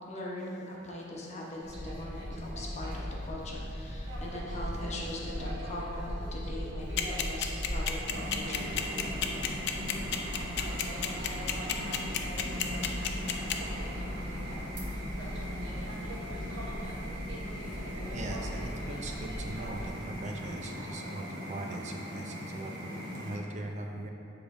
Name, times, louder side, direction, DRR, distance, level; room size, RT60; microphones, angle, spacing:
voice 1, 0.1-8.8, left 1 dB, 35° left, -4 dB, 1.0 m, -41 dB
sound 1, 1.6-19.9, equal, 75° right, 1.4 m, -38 dB
sound 2, 7.0-13.5, left 10 dB, 65° left, 0.5 m, -30 dB
sound 3, 8.1-23.4, equal, 60° right, 1.1 m, -40 dB
voice 2, 18.1-21.2 21.5-24.1, right 2 dB, 40° right, 2 dB, 0.5 m, -40 dB
7.3 x 3.4 x 4.9 m, 2.8 s
head